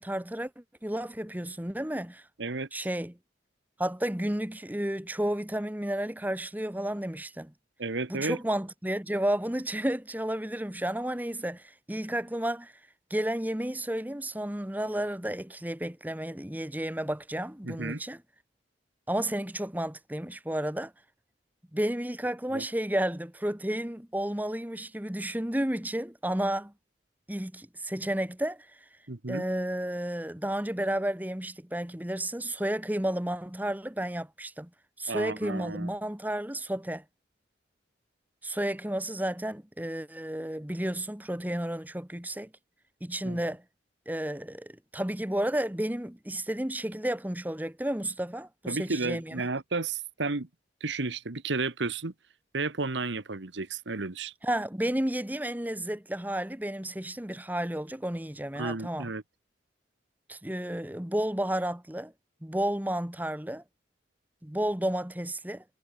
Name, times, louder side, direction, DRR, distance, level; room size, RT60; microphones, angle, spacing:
voice 1, 0.0-2.3 2.7-3.2 3.8-7.5 8.1-12.7 13.1-18.2 19.1-20.9 21.7-26.7 27.3-28.7 29.3-34.7 35.0-37.0 38.4-42.5 43.0-43.6 44.1-49.4 54.4-59.1 60.3-62.1 62.4-63.6 64.4-65.6, right 1 dB, 10° right, 1.1 m, -32 dB
voice 2, 7.8-8.4 17.6-18.0 22.5-22.6 29.1-29.4 35.1-35.9 43.2-43.4 48.7-50.5 50.8-52.1 52.5-54.3 58.6-59.2, right 3 dB, 75° right, 1.3 m, -32 dB
head